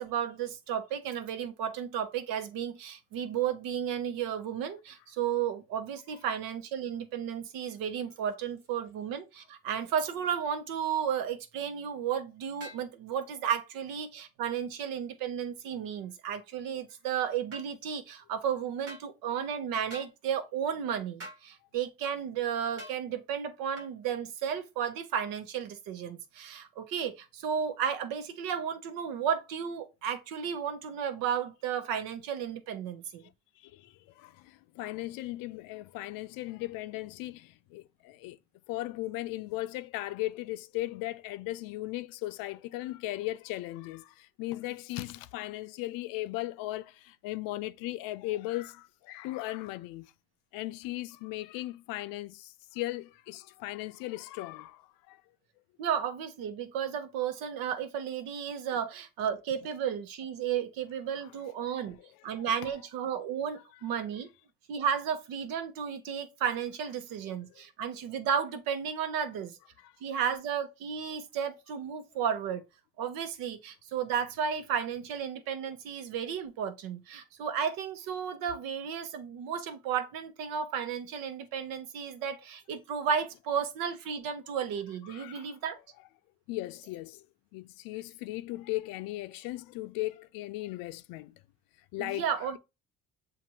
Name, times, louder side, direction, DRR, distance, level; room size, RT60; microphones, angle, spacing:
voice 1, 0.0-33.3 55.8-62.0 62.2-64.3 64.7-69.6 70.0-72.6 73.0-85.8 92.0-92.6, right 8 dB, 85° right, 0.9 m, -33 dB
sound 1, 12.6-12.9 17.5-17.7 18.9-19.1 19.9-20.1 21.2-21.4 22.8-23.0 23.8-23.9, right 1 dB, 45° right, 1.3 m, -44 dB
voice 2, 33.6-38.4 38.7-50.1 50.5-54.8 55.1-55.2 61.7-61.9 62.6-62.7 85.1-85.5 86.5-87.2 87.5-91.3 91.9-92.3, left 17 dB, 85° left, 0.5 m, -37 dB
7.4 x 2.5 x 2.8 m
cardioid pair, 125°, 34 cm